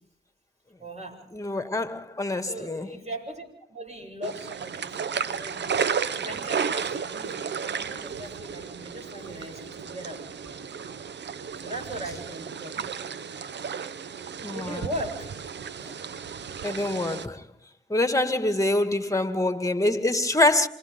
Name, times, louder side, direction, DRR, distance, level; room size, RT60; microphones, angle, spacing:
voice 1, 0.8-1.2 2.5-5.7 6.1-10.2 11.6-12.8 13.6-14.0 14.5-15.4, right 1 dB, 40° right, 7.9 m, -39 dB
voice 2, 1.3-2.9 12.8-12.9 14.4-14.9 16.6-17.5 17.9-20.7, left 2 dB, 20° left, 2.1 m, -25 dB
sound 1, 4.2-17.3, right 7 dB, 85° right, 0.9 m, -33 dB
27.5 x 27.0 x 3.7 m
cardioid pair, 50°, 18 cm